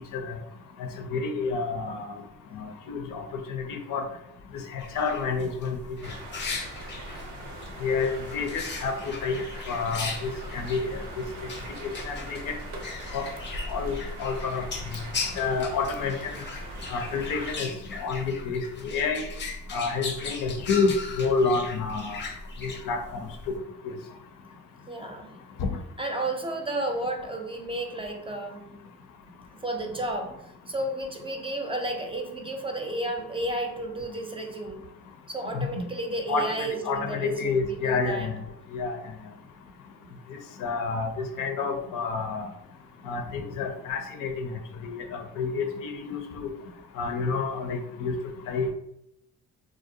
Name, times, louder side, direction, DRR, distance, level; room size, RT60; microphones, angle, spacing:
voice 1, 0.8-2.2 2.5-4.0 4.7-5.8 7.8-9.4 9.7-11.2 12.1-12.5 13.1-13.2 13.7-14.7 15.3-16.1 16.9-17.7 18.0-19.3 19.7-22.2 22.6-23.2 23.5-23.6 25.6-25.8 35.5-35.8 36.3-38.4 38.7-39.0 40.6-42.5 43.0-44.5 44.8-46.5 47.0-48.2 48.5-48.7, left 4 dB, 75° left, 5 dB, 0.6 m, -29 dB
sound 1, 4.8-23.6, left 3 dB, 35° left, 0.6 m, -38 dB
sound 2, 6.0-17.6, right 1 dB, 85° right, 0.7 m, -40 dB
voice 2, 24.9-25.4 26.0-28.8 29.5-34.9 35.3-38.4, right 1 dB, 15° right, 2 dB, 0.5 m, -32 dB
2.4 x 2.1 x 2.7 m, 0.79 s
supercardioid pair, 60°, 32 cm